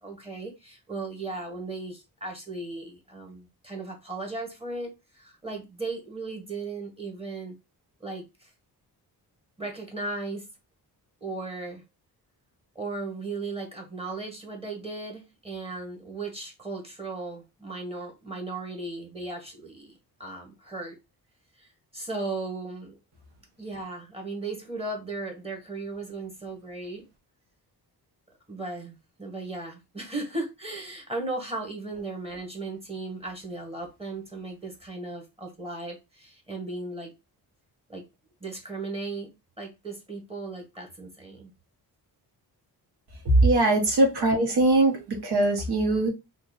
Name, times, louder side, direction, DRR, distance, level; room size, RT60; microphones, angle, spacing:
voice 1, 0.0-7.5 8.0-8.5 9.6-10.5 11.2-11.8 12.7-21.0 21.6-21.7 21.9-23.0 23.6-27.0 28.5-37.1 37.9-38.0 38.4-39.3 39.6-41.5, right 3 dB, 15° right, 1.3 m, -36 dB
voice 2, 43.4-46.1, right 2 dB, 75° right, 1.3 m, -22 dB
3.0 x 2.5 x 4.0 m
wide cardioid pair, 115°, 39 cm